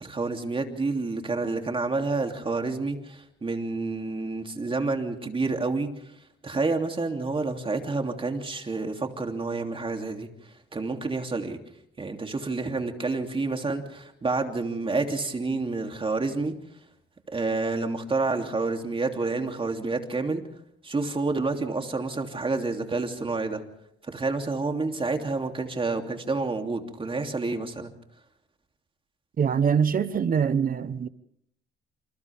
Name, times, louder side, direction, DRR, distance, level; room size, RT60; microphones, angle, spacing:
voice 1, 0.0-6.0 6.4-10.3 10.7-11.6 12.0-16.6 17.3-20.4 20.8-23.6 24.1-27.9, right 3 dB, 25° right, 3.0 m, -29 dB
voice 2, 29.4-31.1, right 7 dB, 45° right, 1.1 m, -23 dB
28.0 x 27.5 x 3.6 m
cardioid pair, 90°, 20 cm